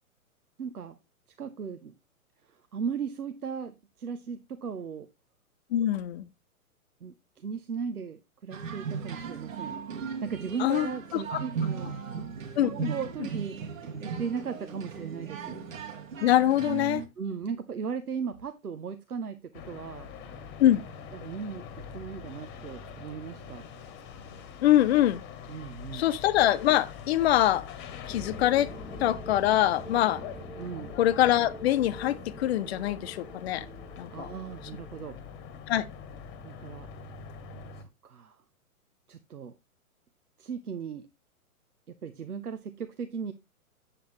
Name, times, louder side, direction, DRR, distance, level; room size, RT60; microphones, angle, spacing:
voice 1, 0.6-1.0 1.4-1.9 2.5-5.1 7.0-9.8 10.2-12.3 12.6-15.6 17.2-20.1 21.1-21.6 21.9-23.7 25.5-26.1 30.6-30.9 34.1-35.2 36.4-36.9 37.7-38.4 39.1-39.5 40.4-41.1 41.9-43.3, right 6 dB, 85° right, 0.9 m, -37 dB
voice 2, 5.7-6.2 10.6-11.4 12.6-12.9 16.2-17.0 20.6-20.8 24.6-25.2 25.9-27.7 28.1-28.7 29.0-30.2 31.0-33.7 34.0-34.3 35.7-35.8, left 13 dB, 45° left, 0.8 m, -24 dB
sound 1, 8.5-17.1, right 6 dB, 65° right, 1.6 m, -37 dB
sound 2, 19.5-37.8, left 6 dB, 25° left, 1.3 m, -44 dB
sound 3, 28.1-35.0, equal, ahead, 0.7 m, -45 dB
8.3 x 7.8 x 3.0 m
figure-of-eight pair, 115°, 44 cm